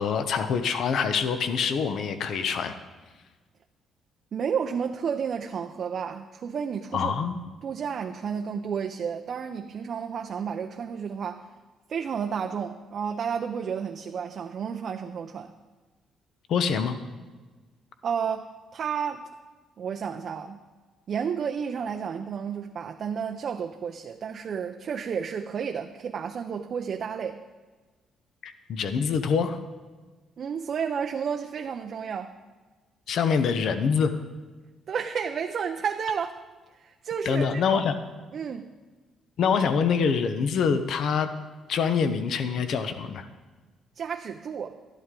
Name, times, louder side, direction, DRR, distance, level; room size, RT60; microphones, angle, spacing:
voice 1, 0.0-2.7 6.9-7.4 16.5-17.0 28.4-29.6 33.1-34.1 37.2-37.9 39.4-41.3 41.7-43.3, left 6 dB, 65° left, 9 dB, 0.8 m, -25 dB
voice 2, 4.3-7.1 7.6-11.5 11.9-15.5 18.0-19.3 19.8-20.6 21.1-27.4 30.4-32.4 34.9-36.4 36.7-37.8 38.3-38.7 44.0-44.8, right 7 dB, 50° right, 5 dB, 0.5 m, -31 dB
12.5 x 11.5 x 3.8 m, 1.3 s
cardioid pair, 120°, 0 cm